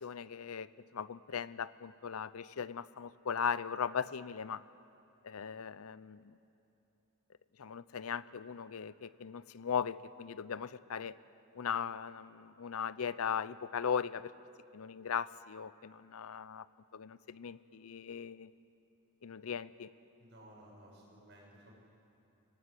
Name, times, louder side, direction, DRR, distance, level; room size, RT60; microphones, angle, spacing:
voice 1, 0.0-4.6 5.2-6.4 7.6-11.2 11.5-14.3 14.7-16.7 16.9-18.5 19.2-19.9, left 7 dB, 80° left, 17 dB, 0.6 m, -38 dB
voice 2, 20.2-21.7, right 1 dB, 50° right, -3 dB, 7.3 m, -56 dB
24.0 x 18.5 x 8.2 m, 2.9 s
head